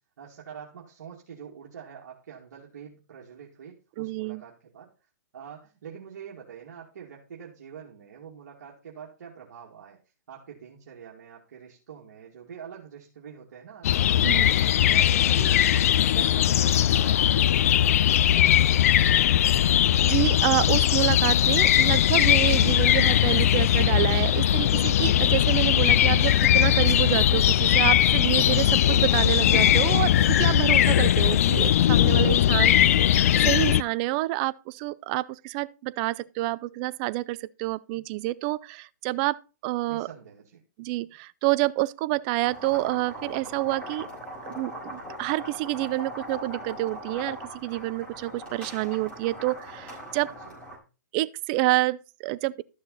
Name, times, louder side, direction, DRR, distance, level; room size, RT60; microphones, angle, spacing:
voice 1, 0.2-4.9 5.3-10.0 10.3-14.6 14.9-15.9 16.1-18.9 32.4-33.0 39.9-40.6 50.3-50.6, right 7 dB, 60° right, 2.4 m, -45 dB
voice 2, 4.0-4.4 14.2-14.5 20.0-40.1 40.8-44.1 44.4-50.3 51.1-52.6, right 19 dB, 25° right, 0.4 m, -28 dB
sound 1, 13.8-33.8, left 11 dB, 50° left, 0.4 m, -20 dB
sound 2, 42.4-50.8, equal, 15° left, 4.9 m, -40 dB
13.0 x 6.5 x 4.1 m
hypercardioid pair, 150°, 10 cm